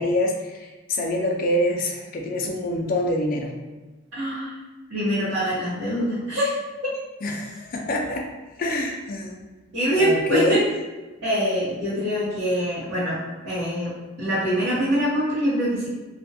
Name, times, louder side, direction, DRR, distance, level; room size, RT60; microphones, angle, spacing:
voice 1, 0.0-3.5 7.2-8.3 8.6-9.4 10.0-10.6, left 1 dB, 45° left, 1 dB, 0.4 m, -25 dB
voice 2, 4.1-4.5 4.9-6.5 9.7-10.6 11.2-13.2 13.4-13.9 14.2-15.9, equal, 80° right, -13 dB, 0.9 m, -24 dB
2.4 x 2.1 x 2.6 m, 1.2 s
head